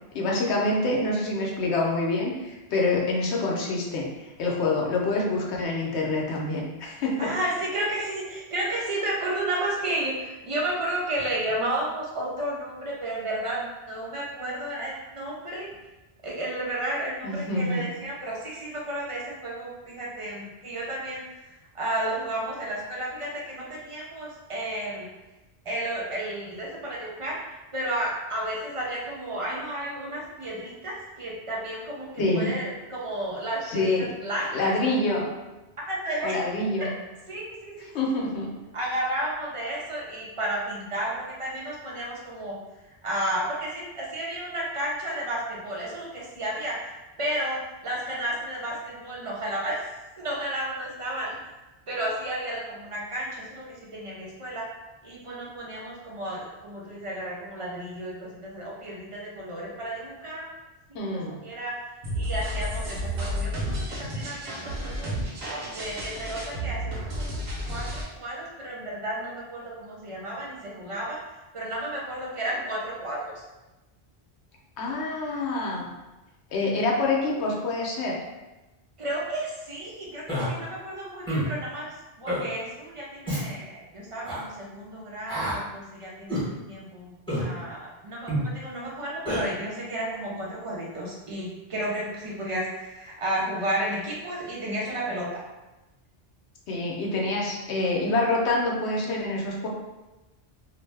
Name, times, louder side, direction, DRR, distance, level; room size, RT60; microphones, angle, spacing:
voice 1, 0.1-4.1 4.4-7.5 17.2-17.8 32.2-32.5 33.7-34.1 34.5-35.3 36.2-36.9 37.9-38.5 60.9-61.4 74.8-75.8 76.5-78.2 96.7-99.7, left 2 dB, 85° left, -2 dB, 0.9 m, -26 dB
voice 2, 7.2-15.7 16.2-25.1 25.7-27.4 27.7-34.7 35.8-36.3 37.3-37.9 38.7-42.6 43.0-51.3 51.9-54.6 55.0-60.5 60.9-61.7 62.2-65.1 65.7-71.2 71.5-73.4 79.0-87.1 87.4-95.4, right 1 dB, 45° right, -4 dB, 0.4 m, -32 dB
sound 1, 62.0-68.0, equal, 75° right, 1.0 m, -31 dB
Human voice, 80.3-80.5 81.3-81.5 82.3-82.4 83.3-83.4 84.2-84.4 85.3-85.6 86.3-86.5 87.3-87.5 88.3-88.5 89.3-89.4, equal, 5° left, 0.8 m, -27 dB
2.5 x 2.0 x 3.2 m, 1.1 s
omnidirectional pair, 1.1 m